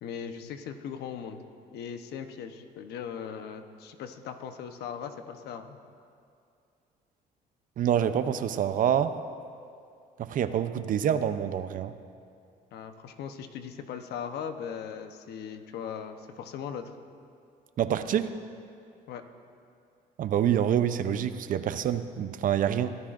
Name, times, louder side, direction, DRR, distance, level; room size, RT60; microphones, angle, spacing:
voice 1, 0.0-1.4 1.7-5.8 12.7-17.0 19.1-19.2, left 7 dB, 75° left, 7 dB, 1.0 m, -39 dB
voice 2, 7.8-9.1 10.2-11.9 17.8-18.3 20.2-23.0, right 9 dB, 55° right, 11 dB, 0.6 m, -26 dB
23.0 x 14.0 x 2.6 m, 2.4 s
cardioid pair, 110°, 17 cm